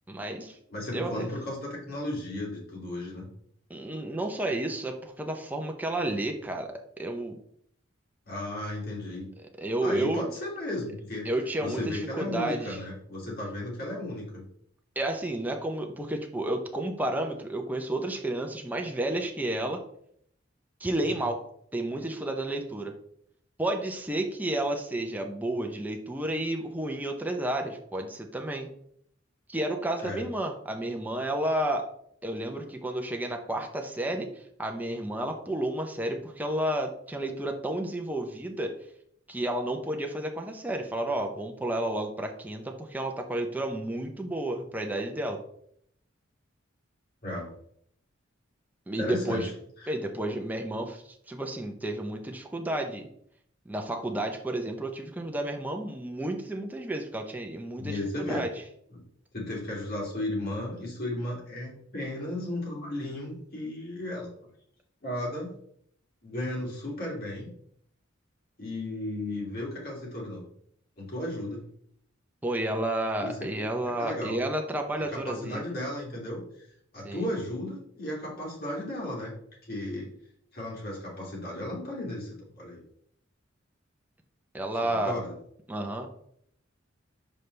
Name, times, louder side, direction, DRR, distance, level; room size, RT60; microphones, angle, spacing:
voice 1, 0.1-0.6 0.9-1.3 3.7-7.4 9.6-10.2 11.2-12.8 15.0-19.8 20.8-21.4 21.7-22.9 23.6-28.7 29.5-31.9 32.2-38.8 39.3-45.4 48.9-49.5 49.9-53.1 53.7-58.5 72.4-75.6 77.0-77.2 84.5-85.2 85.7-86.1, right 1 dB, 10° right, 2 dB, 0.6 m, -31 dB
voice 2, 0.7-3.3 8.3-9.3 9.8-11.3 11.6-14.4 21.0-21.2 30.0-30.3 47.2-47.5 49.0-49.5 49.8-49.9 57.8-58.4 58.9-59.0 59.3-64.3 65.0-65.5 66.2-67.5 68.6-70.4 71.0-71.7 73.2-73.7 74.0-74.4 75.1-79.3 79.6-80.1 80.5-82.8 84.9-85.3, left 1 dB, 50° left, -3 dB, 2.6 m, -35 dB
6.3 x 5.3 x 3.3 m, 0.67 s
head